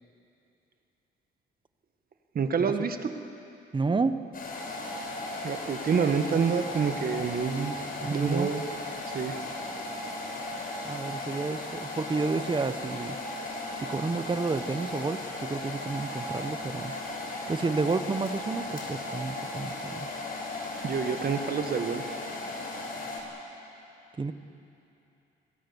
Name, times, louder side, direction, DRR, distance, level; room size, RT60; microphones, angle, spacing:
voice 1, 2.4-3.3 5.4-7.8 8.1-8.6 9.1-9.4 20.8-22.0, right 6 dB, 50° right, 7 dB, 1.7 m, -28 dB
voice 2, 3.7-4.2 8.0-8.5 10.8-13.2 13.8-16.9 17.5-20.1 24.2-24.3, right 4 dB, 25° right, 10 dB, 1.2 m, -30 dB
sound 1, 4.3-23.2, left 2 dB, 45° left, 5.5 m, -36 dB
29.0 x 18.0 x 7.2 m, 2.8 s
cardioid pair, 90°, 20 cm